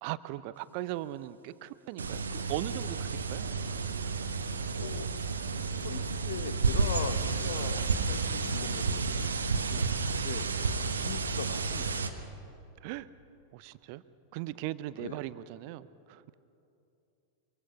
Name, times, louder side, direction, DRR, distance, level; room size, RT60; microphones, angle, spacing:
voice 1, 0.0-3.8 9.7-9.9 12.8-13.1 13.5-14.0 14.3-16.3, right 15 dB, 45° right, 16 dB, 0.7 m, -39 dB
sound 1, 2.0-12.1, right 4 dB, 70° right, 1.3 m, -31 dB
voice 2, 4.7-5.1 5.8-9.4 10.1-10.5 10.9-12.0 15.0-15.2, left 8 dB, 60° left, 10 dB, 1.1 m, -40 dB
25.0 x 24.0 x 5.7 m, 2.8 s
figure-of-eight pair, 90°, 0 cm